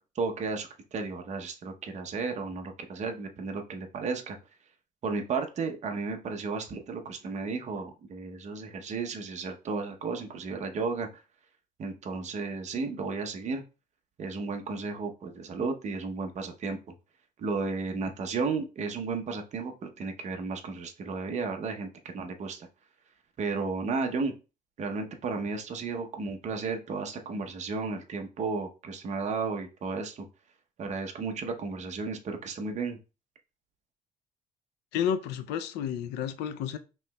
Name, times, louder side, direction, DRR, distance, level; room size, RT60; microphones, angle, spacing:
voice 1, 0.1-4.4 5.0-11.1 11.8-13.6 14.2-16.8 17.4-22.7 23.4-24.3 24.8-30.3 30.8-33.0, right 4 dB, 45° right, 0.8 m, -33 dB
voice 2, 34.9-36.8, left 8 dB, 90° left, 0.5 m, -31 dB
5.4 x 3.1 x 2.2 m
cardioid pair, 110°, 17 cm